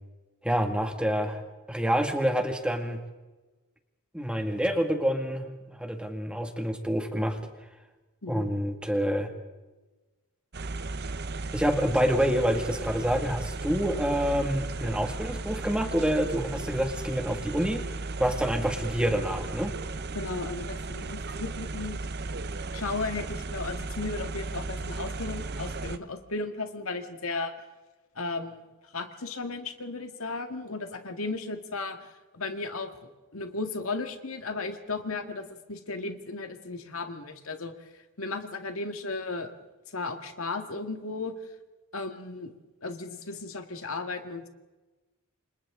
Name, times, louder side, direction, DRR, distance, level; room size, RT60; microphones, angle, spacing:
voice 1, 0.4-1.4 1.7-3.0 4.1-7.4 8.3-9.3 11.5-19.7, equal, 5° right, 4 dB, 2.1 m, -27 dB
sound 1, 10.5-26.0, right 3 dB, 50° right, 0.9 m, -35 dB
voice 2, 20.1-22.0 22.7-27.5 28.2-28.6 28.9-32.0 32.3-32.9 33.3-37.7 38.2-39.5 39.9-41.3 41.9-42.5 42.8-44.5, left 3 dB, 80° left, 6 dB, 2.0 m, -35 dB
29.5 x 25.5 x 3.8 m, 1.2 s
head